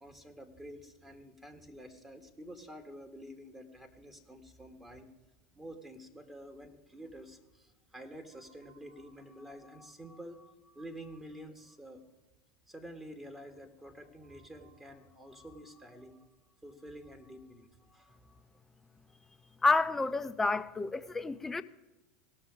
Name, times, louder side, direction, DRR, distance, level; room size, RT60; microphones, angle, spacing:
voice 1, 0.0-5.1 5.5-12.0 12.7-16.2 16.6-18.4, equal, 15° right, 1.5 m, -49 dB
voice 2, 19.6-21.6, left 3 dB, 15° left, 0.6 m, -29 dB
18.5 x 6.2 x 4.8 m
hypercardioid pair, 85°, 2 cm